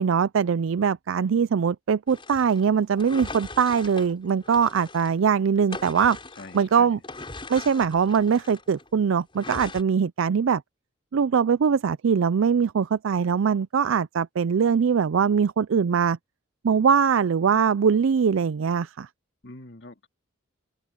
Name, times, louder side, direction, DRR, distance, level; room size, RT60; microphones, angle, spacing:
voice 1, 0.0-6.2 6.5-7.0 7.5-10.6 11.1-16.2 16.6-19.1, right 6 dB, 80° right, 0.4 m, -22 dB
sound 1, 2.1-5.2 5.6-8.9 9.3-9.8, left 3 dB, 25° left, 6.9 m, -40 dB
voice 2, 6.4-7.0 19.4-20.1, left 2 dB, 60° left, 2.3 m, -44 dB
open air
head